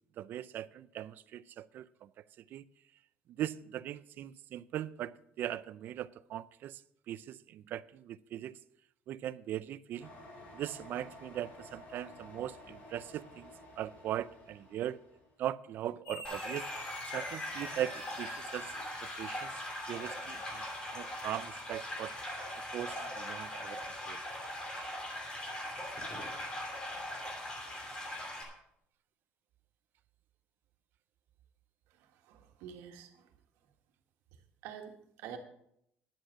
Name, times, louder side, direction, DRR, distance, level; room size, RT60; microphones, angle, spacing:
voice 1, 0.2-2.1 2.5-2.6 3.4-6.8 7.1-8.6 9.1-10.1 10.5-13.5 13.8-15.0 15.4-16.6 17.1-18.7 19.0-19.6 19.9-20.6 20.9-22.2 22.7-23.8 24.1-24.2, right 12 dB, 50° right, 0.4 m, -39 dB
sound 1, 10.0-15.3, left 1 dB, 40° left, 2.9 m, -53 dB
sound 2, 16.1-24.9, left 2 dB, 70° left, 5.2 m, -50 dB
sound 3, 16.2-28.4, left 1 dB, 20° left, 2.6 m, -41 dB
voice 2, 32.2-33.2 34.6-35.4, right 9 dB, 85° right, 1.6 m, -47 dB
10.5 x 7.8 x 6.2 m
cardioid pair, 150°, 4 cm